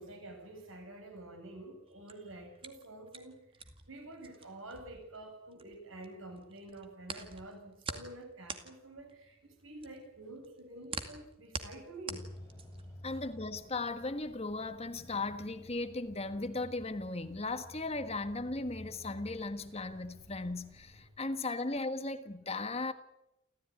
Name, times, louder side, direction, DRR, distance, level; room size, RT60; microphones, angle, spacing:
voice 1, 0.0-3.4 3.9-12.2 13.0-13.2, right 1 dB, 80° right, 7.6 m, -48 dB
sound 1, 1.9-6.1 6.4-12.9, right 4 dB, 25° right, 2.3 m, -44 dB
sound 2, 12.1-21.1, equal, 15° left, 7.8 m, -53 dB
voice 2, 13.0-22.9, left 2 dB, 30° left, 1.5 m, -37 dB
29.0 x 14.5 x 9.8 m
head